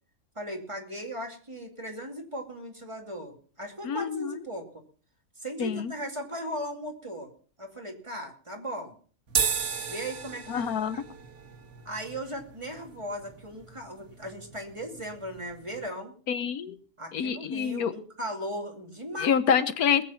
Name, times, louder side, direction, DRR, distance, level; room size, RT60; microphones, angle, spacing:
voice 1, 0.4-4.7 5.4-7.3 7.6-9.0 9.8-10.7 10.9-11.0 11.8-16.1 17.0-19.3, equal, 20° right, 2 dB, 2.6 m, -37 dB
voice 2, 3.8-4.4 5.6-5.9 10.5-11.0 16.3-16.8 17.1-17.9 19.2-20.0, left 7 dB, 85° left, 13 dB, 1.5 m, -27 dB
sound 1, 9.3-15.9, right 6 dB, 75° right, 1.8 m, -35 dB
20.5 x 8.4 x 5.7 m, 0.43 s
omnidirectional pair, 1.5 m